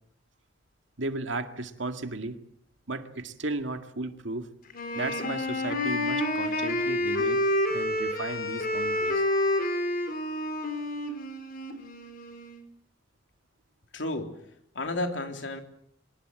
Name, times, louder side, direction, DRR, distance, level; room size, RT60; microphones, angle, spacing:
voice 1, 1.0-2.4 2.9-4.5 4.9-9.2, right 2 dB, 75° right, 7 dB, 2.0 m, -35 dB
Wind instrument woodwind instrument, 4.7-12.6, left 1 dB, 50° left, 4.5 m, -29 dB
voice 2, 13.9-14.4 14.7-15.6, left 2 dB, 75° left, 4 dB, 3.4 m, -32 dB
25.0 x 19.0 x 7.8 m, 0.74 s
head